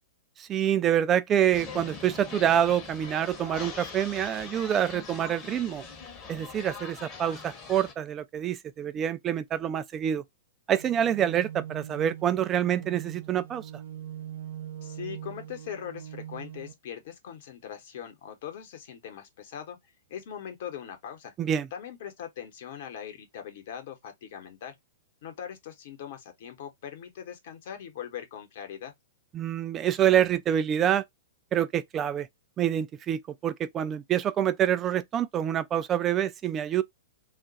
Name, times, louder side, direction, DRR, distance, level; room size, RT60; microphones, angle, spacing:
voice 1, 0.4-5.8 6.3-10.2 10.7-13.7 21.4-21.7 29.3-31.0 31.5-32.3 32.6-36.8, right 10 dB, 25° right, 0.4 m, -26 dB
sound 1, 1.5-7.9, left 5 dB, 30° left, 0.9 m, -42 dB
sound 2, 10.7-16.7, right 10 dB, 70° right, 0.6 m, -42 dB
voice 2, 14.8-19.8 20.1-21.3 21.7-24.8 25.2-28.9, left 9 dB, 55° left, 1.0 m, -41 dB
2.5 x 2.2 x 3.9 m
hypercardioid pair, 110°, 0 cm